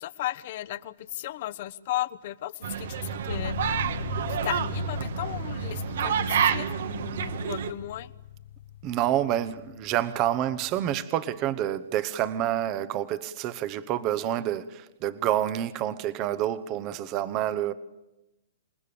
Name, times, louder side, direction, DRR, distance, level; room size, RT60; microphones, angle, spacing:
voice 1, 0.0-3.6 4.4-8.1, left 14 dB, 50° left, 1.1 m, -35 dB
sound 1, 2.6-7.7, right 7 dB, 65° right, 1.7 m, -29 dB
sound 2, 3.3-11.0, left 9 dB, 75° left, 0.8 m, -40 dB
voice 2, 8.8-17.7, right 12 dB, 30° right, 1.0 m, -28 dB
27.5 x 19.5 x 7.0 m
hypercardioid pair, 140°, 0 cm